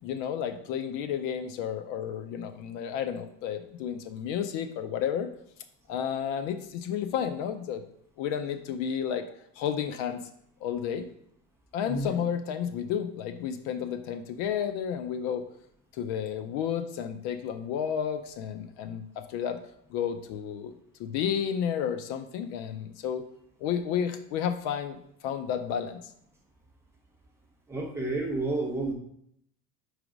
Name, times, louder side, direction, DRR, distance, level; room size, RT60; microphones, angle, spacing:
voice 1, 0.0-5.3 5.9-7.8 8.2-9.2 9.6-10.2 10.6-11.0 11.7-15.4 15.9-19.6 19.9-20.7 21.0-23.2 23.6-26.0, left 8 dB, 60° left, 9 dB, 0.5 m, -31 dB
voice 2, 11.9-12.2 27.7-28.9, right 2 dB, 10° right, -1 dB, 0.8 m, -30 dB
4.8 x 3.9 x 5.0 m, 0.70 s
cardioid pair, 175°, 33 cm